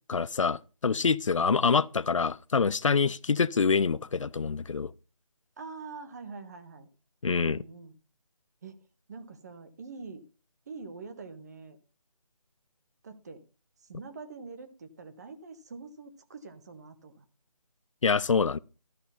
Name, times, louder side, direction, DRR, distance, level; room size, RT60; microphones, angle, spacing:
voice 1, 0.1-4.9 7.2-7.6 18.0-18.6, left 5 dB, 55° left, 0.5 m, -26 dB
voice 2, 5.6-6.9 7.4-8.0 8.6-8.8 9.1-10.2 10.7-11.8 13.0-13.4 13.8-17.2, right 4 dB, 25° right, 1.0 m, -45 dB
13.0 x 6.8 x 5.6 m
figure-of-eight pair, 155°, 19 cm